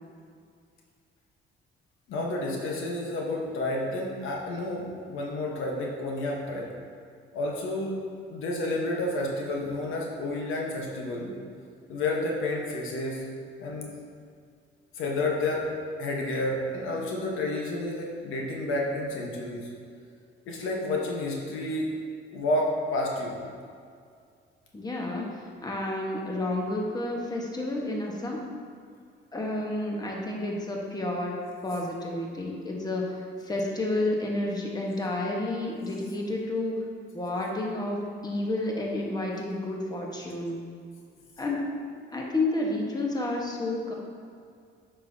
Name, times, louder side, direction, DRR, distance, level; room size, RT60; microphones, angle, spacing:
voice 1, 2.1-6.7 7.3-8.0 8.3-11.3 11.9-13.2 13.6-13.9 14.9-15.7 16.0-19.7 20.4-22.0 22.3-23.4, left 2 dB, 85° left, -1 dB, 1.1 m, -30 dB
voice 2, 24.7-28.4 29.3-36.8 37.1-40.6 41.4-41.7 42.1-43.9, left 2 dB, 20° left, -1 dB, 1.2 m, -30 dB
8.2 x 5.8 x 2.7 m, 2.2 s
cardioid pair, 90°, 20 cm